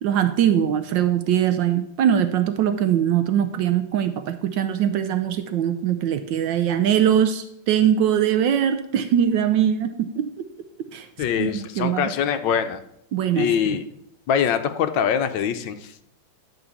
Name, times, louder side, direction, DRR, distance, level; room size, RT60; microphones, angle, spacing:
voice 1, 0.0-10.3 10.9-11.1 11.4-12.1 13.1-13.8, right 9 dB, 75° right, 10 dB, 1.2 m, -22 dB
voice 2, 11.2-12.8 13.3-13.8 14.3-15.9, left 8 dB, 75° left, 9 dB, 1.3 m, -23 dB
12.0 x 4.0 x 7.2 m, 0.74 s
omnidirectional pair, 2.2 m